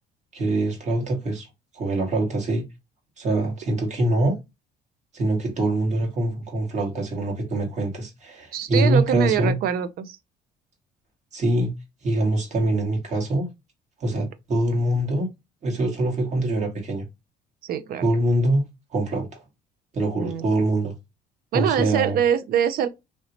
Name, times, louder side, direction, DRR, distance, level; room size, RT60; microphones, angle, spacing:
voice 1, 0.3-1.5 1.7-2.6 3.2-4.3 5.1-9.6 11.3-11.7 12.0-13.5 14.0-15.3 15.6-17.0 18.0-19.4 19.9-20.9 21.5-22.2, right 1 dB, 45° right, 1.6 m, -24 dB
voice 2, 8.5-10.2 17.6-18.0 20.2-20.4 21.5-22.9, right 9 dB, 60° right, 0.5 m, -24 dB
3.0 x 2.9 x 2.7 m
cardioid pair, 110°, 17 cm